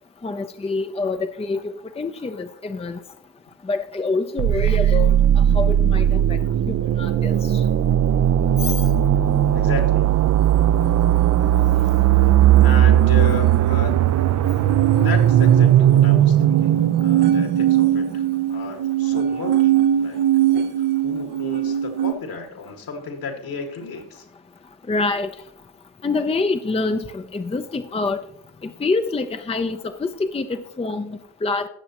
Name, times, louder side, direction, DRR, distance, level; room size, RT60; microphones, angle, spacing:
voice 1, 0.2-3.0 3.7-6.4 6.7-7.4 24.9-25.3 26.0-28.2 28.6-31.7, left 3 dB, 15° left, 8 dB, 0.6 m, -26 dB
sound 1, 4.4-18.1, right 11 dB, 45° right, 0.6 m, -17 dB
voice 2, 9.5-10.1 12.6-14.0 15.0-16.7 17.0-18.2 18.5-20.2 20.8-24.3, left 4 dB, 60° left, 5 dB, 2.0 m, -33 dB
sound 2, 12.5-22.1, right 11 dB, 70° right, 0.9 m, -22 dB
15.5 x 6.9 x 3.0 m, 0.69 s
hypercardioid pair, 50°, 41 cm